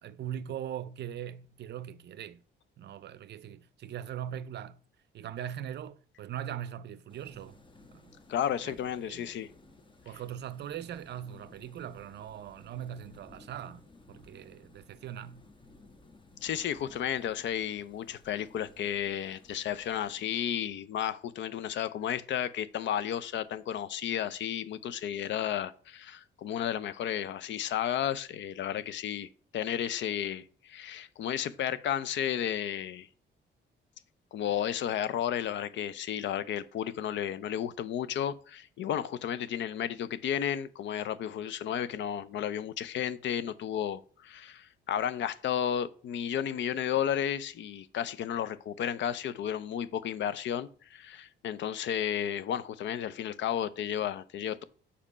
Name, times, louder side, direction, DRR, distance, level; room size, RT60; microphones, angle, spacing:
voice 1, 0.0-2.4 2.8-4.8 5.1-7.6 7.9-8.0 8.4-8.8 9.1-9.3 10.1-15.4, right 10 dB, 60° right, 0.5 m, -40 dB
sound 1, 7.1-20.4, left 2 dB, 25° left, 0.9 m, -57 dB
voice 2, 8.3-9.5 16.4-33.1 34.3-54.6, left 10 dB, 65° left, 0.5 m, -33 dB
5.1 x 4.3 x 5.5 m
cardioid pair, 90°, 20 cm